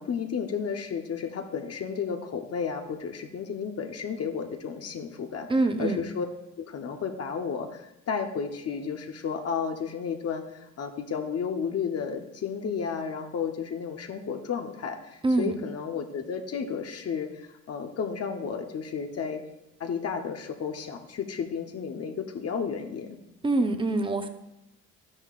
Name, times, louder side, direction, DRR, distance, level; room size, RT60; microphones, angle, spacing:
voice 1, 0.0-5.5 5.8-6.3 6.6-19.4 19.8-23.2, left 6 dB, 55° left, 4 dB, 1.0 m, -32 dB
voice 2, 5.5-6.0 15.2-15.6 23.4-24.3, right 2 dB, 15° right, 7 dB, 0.9 m, -25 dB
11.5 x 9.8 x 2.5 m, 0.91 s
cardioid pair, 90°, 30 cm